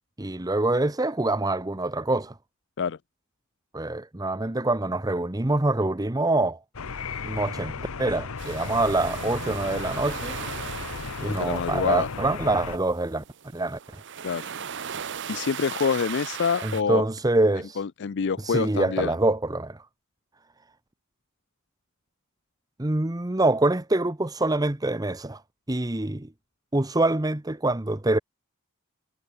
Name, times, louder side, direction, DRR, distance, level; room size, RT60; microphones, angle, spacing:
voice 1, 0.2-2.3 3.7-6.6 7.2-10.4 11.2-13.2 13.5-13.8 16.6-17.8 18.4-19.8 22.8-25.4 25.7-26.3 26.7-28.2, right 2 dB, 15° right, 0.9 m, -25 dB
sound 1, 6.7-12.8, left 5 dB, 70° left, 0.9 m, -35 dB
sound 2, 8.4-16.8, right 8 dB, 55° right, 0.9 m, -38 dB
voice 2, 11.4-12.1 14.2-15.0 15.3-17.1 17.8-19.2, left 6 dB, 55° left, 0.4 m, -27 dB
head